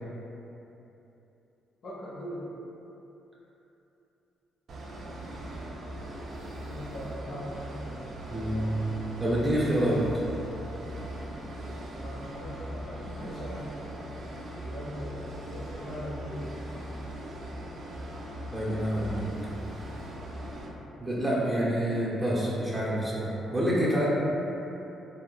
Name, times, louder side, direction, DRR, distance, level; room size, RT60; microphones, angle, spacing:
voice 1, 1.8-2.4 6.6-8.0 8.4-8.7 9.5-9.7 12.0-13.6 14.6-16.5, equal, 55° left, -6 dB, 0.7 m, -40 dB
sound 1, 4.7-20.7, right 1 dB, 60° right, 0.4 m, -40 dB
voice 2, 8.3-8.9 9.2-10.0 18.5-19.3 21.0-24.1, equal, 15° right, -7 dB, 0.6 m, -27 dB
2.3 x 2.1 x 3.8 m, 3.0 s
cardioid pair, 90°, 0 cm